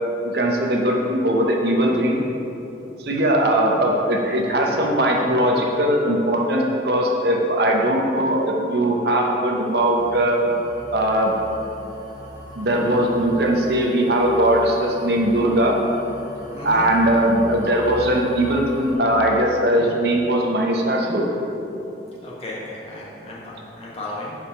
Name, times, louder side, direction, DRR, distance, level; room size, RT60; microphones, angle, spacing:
voice 1, 0.2-2.2 3.0-10.4 10.9-11.4 12.5-15.8 16.6-21.3, right 1 dB, 65° right, 0 dB, 0.8 m, -20 dB
sound 1, 9.5-19.0, left 1 dB, 25° right, 1.3 m, -41 dB
voice 2, 16.5-17.3 22.2-24.4, left 1 dB, 35° left, -6 dB, 1.3 m, -35 dB
5.1 x 4.9 x 5.6 m, 2.9 s
head